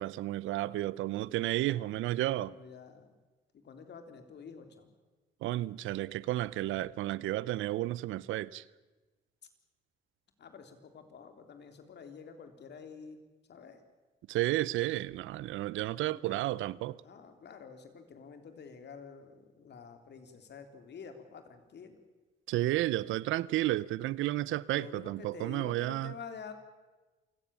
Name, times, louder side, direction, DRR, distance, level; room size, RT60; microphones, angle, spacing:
voice 1, 0.0-2.6 5.4-8.6 14.3-17.0 22.5-26.1, right 16 dB, 85° right, 0.6 m, -32 dB
voice 2, 1.3-2.0 2.2-3.1 3.5-4.9 10.4-13.2 13.5-13.8 16.0-16.6 17.0-22.0 24.8-26.5, left 6 dB, 60° left, 3.5 m, -49 dB
28.0 x 17.5 x 7.1 m
cardioid pair, 90°, 20 cm